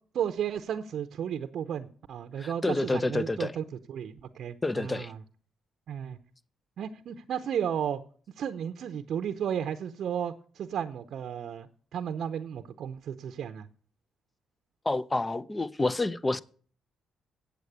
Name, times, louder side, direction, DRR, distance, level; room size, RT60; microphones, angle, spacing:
voice 1, 0.1-5.2 5.9-6.2 6.8-8.0 8.4-13.7, right 8 dB, 65° right, 0.7 m, -34 dB
voice 2, 2.4-3.5 4.6-5.1 14.8-16.4, left 2 dB, 20° left, 0.6 m, -29 dB
8.2 x 8.0 x 8.4 m
cardioid pair, 90°, 0 cm